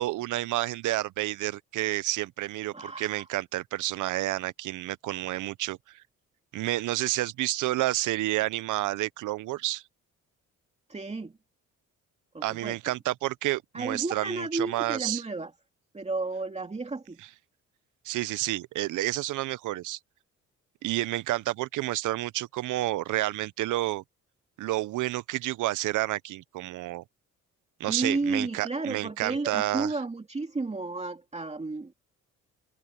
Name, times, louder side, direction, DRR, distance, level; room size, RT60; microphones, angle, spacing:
voice 1, 0.0-6.0 6.5-9.8 12.4-15.2 18.0-20.0 20.8-24.0 24.6-27.0 27.8-29.9, right 16 dB, 80° right, 0.8 m, -30 dB
voice 2, 2.7-3.3 10.9-11.4 12.3-12.8 13.7-15.5 15.9-17.2 27.9-31.9, right 3 dB, 20° right, 2.5 m, -32 dB
cardioid pair, 90°, 30 cm